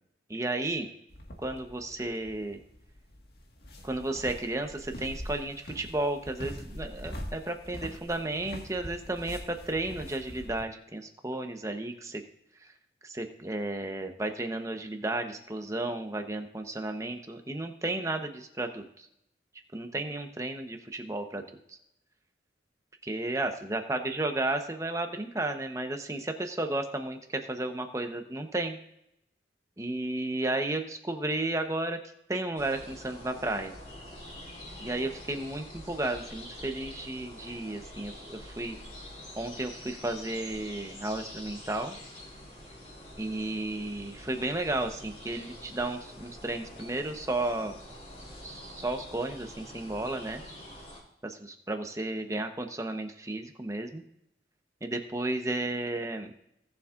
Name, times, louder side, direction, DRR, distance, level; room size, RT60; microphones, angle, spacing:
voice 1, 0.3-0.9 1.4-2.6 3.8-12.2 13.0-19.1 19.7-21.8 23.0-28.8 29.8-32.0 32.3-33.7 34.8-38.8 39.4-42.0 43.2-47.8 48.4-50.4 51.2-54.0 54.8-56.3, right 2 dB, 15° right, 5 dB, 1.0 m, -33 dB
sound 1, 1.1-10.6, equal, 60° left, 1.8 m, -43 dB
sound 2, 32.6-51.0, left 1 dB, 35° left, 4.2 m, -46 dB
19.0 x 7.2 x 2.5 m, 0.78 s
head